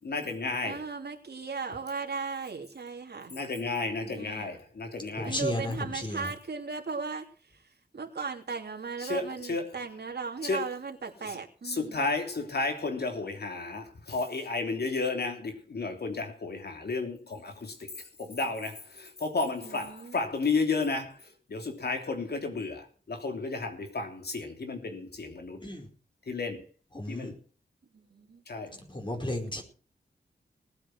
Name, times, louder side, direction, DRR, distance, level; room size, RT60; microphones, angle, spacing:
voice 1, 0.0-0.8 3.3-5.3 9.0-9.7 10.4-10.6 11.3-11.4 11.6-25.6 26.3-26.6 27.1-27.3 28.5-28.8, left 3 dB, 65° left, 3.2 m, -32 dB
voice 2, 0.6-3.3 4.0-4.5 5.2-12.1 19.6-20.2 27.9-28.4, right 4 dB, 65° right, 3.0 m, -37 dB
voice 3, 5.2-6.3 25.6-25.9 26.9-27.3 28.7-29.6, left 1 dB, 25° left, 4.8 m, -34 dB
19.0 x 8.7 x 6.3 m
wide cardioid pair, 85°, 18 cm